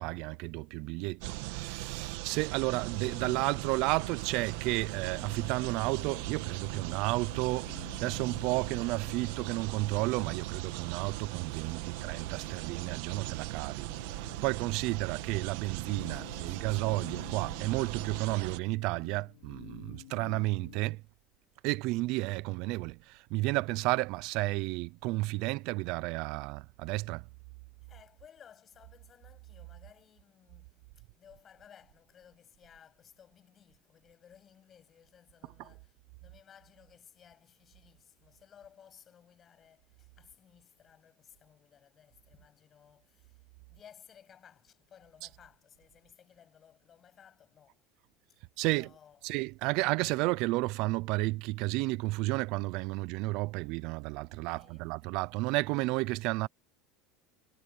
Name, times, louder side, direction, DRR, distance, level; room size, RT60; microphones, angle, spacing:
voice 1, 0.0-13.9 14.4-21.0 21.6-27.3 35.6-35.7 45.2-45.3 48.6-48.9 49.2-56.5, right 22 dB, 50° right, 0.5 m, -32 dB
sound 1, 1.2-18.6, right 18 dB, 65° right, 1.4 m, -39 dB
sound 2, 2.9-21.0, left 17 dB, 90° left, 5.0 m, -52 dB
voice 2, 11.7-12.5 16.1-16.9 27.8-47.8 48.3-48.4 48.7-49.3 54.5-54.9, left 8 dB, 25° left, 7.7 m, -59 dB
cardioid pair, 175°, 0 cm